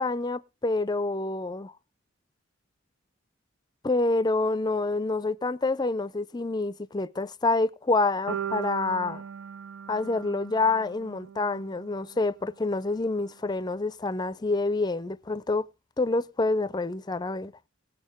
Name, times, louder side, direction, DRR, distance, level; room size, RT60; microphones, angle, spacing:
voice 1, 0.0-1.7 3.8-9.2 9.9-15.6 16.0-17.5, left 3 dB, 20° left, 0.5 m, -27 dB
sound 1, 8.3-12.4, right 8 dB, 75° right, 0.5 m, -38 dB
19.0 x 6.4 x 3.6 m
head